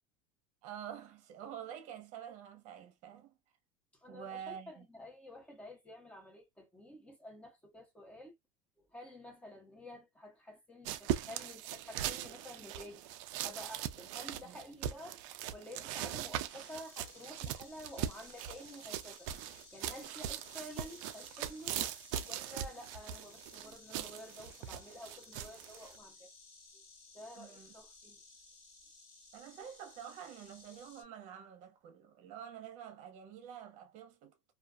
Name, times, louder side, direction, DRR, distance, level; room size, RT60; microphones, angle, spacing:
voice 1, 0.6-3.4 4.1-4.9 14.4-14.6 27.3-27.7 29.3-34.3, right 9 dB, 45° right, 0.9 m, -48 dB
voice 2, 3.9-8.3 8.8-13.1 13.4-15.2 15.5-19.3 19.7-21.8 22.3-26.3 26.7-26.8 27.1-28.2, left 1 dB, 5° left, 1.0 m, -50 dB
sound 1, 10.9-26.0, right 11 dB, 65° right, 0.4 m, -40 dB
Insect, 16.5-31.0, left 3 dB, 40° left, 1.2 m, -58 dB
2.4 x 2.4 x 2.2 m
supercardioid pair, 150°, 18 cm